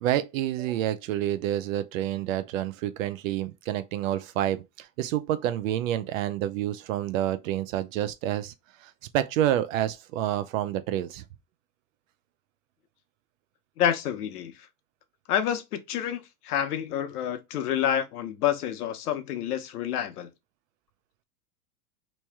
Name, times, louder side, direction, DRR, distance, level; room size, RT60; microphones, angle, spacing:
voice 1, 0.0-8.5 8.8-11.2, right 12 dB, 60° right, 0.6 m, -28 dB
voice 2, 13.8-14.5 15.3-16.2 16.4-20.3, left 10 dB, 75° left, 0.9 m, -28 dB
3.1 x 2.9 x 3.4 m
supercardioid pair, 150°, 45 cm